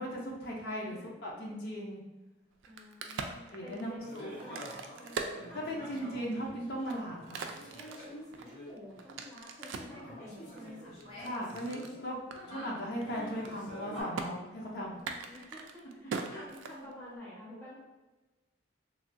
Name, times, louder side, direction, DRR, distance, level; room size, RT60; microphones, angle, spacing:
voice 1, 0.0-2.0 3.5-4.4 5.5-7.5 11.2-12.2 12.5-15.0 16.3-16.5, equal, 60° left, -3 dB, 0.6 m, -38 dB
voice 2, 0.7-1.6 2.6-6.6 7.3-7.6 8.4-11.0 12.4-13.0 14.5-17.8, left 1 dB, 15° left, -11 dB, 1.1 m, -50 dB
Crack, 2.5-6.2 6.7-10.0 10.6-11.9 12.3-12.4 12.7-13.0 13.3-13.8 14.1-14.3 14.9-17.2, right 5 dB, 85° right, 0.3 m, -41 dB
sound 1, 4.0-9.2 9.7-14.0, equal, 40° left, 1.1 m, -48 dB
3.1 x 2.2 x 2.6 m, 1.1 s
head